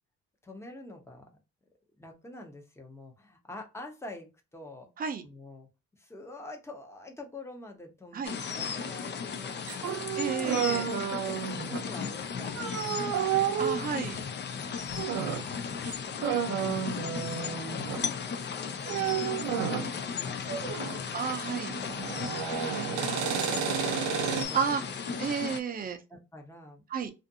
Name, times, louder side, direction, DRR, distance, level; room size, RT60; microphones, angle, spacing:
voice 1, 0.4-1.3 2.0-4.9 5.2-5.7 6.0-10.1 10.7-13.6 14.5-16.6 17.3-20.9 22.6-25.2 26.1-26.9, left 2 dB, 10° left, 0.8 m, -47 dB
sound 1, 8.2-25.6, left 6 dB, 35° left, 0.4 m, -36 dB
sound 2, 8.6-8.8 9.7-11.9 12.6-13.9 14.9-15.5 15.8-16.0 16.2-18.1 18.9-20.0 20.5-21.0 21.3-24.5, right 8 dB, 85° right, 0.6 m, -31 dB
voice 2, 10.2-10.8 13.6-14.2 21.1-21.7 22.7-23.5 24.5-24.8 25.2-26.0 26.9-27.1, right 6 dB, 30° right, 0.5 m, -32 dB
2.5 x 2.5 x 2.6 m
cardioid pair, 90°, 30 cm